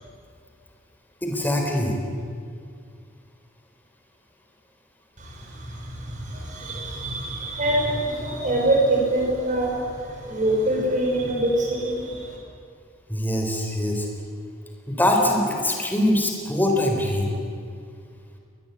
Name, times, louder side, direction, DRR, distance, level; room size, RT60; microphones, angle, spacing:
voice 1, 1.2-2.0 13.1-14.1 14.9-17.3, left 1 dB, 10° left, 2 dB, 4.1 m, -23 dB
voice 2, 5.2-12.4, right 1 dB, 40° right, -2 dB, 6.3 m, -25 dB
22.5 x 19.5 x 9.4 m, 2.2 s
head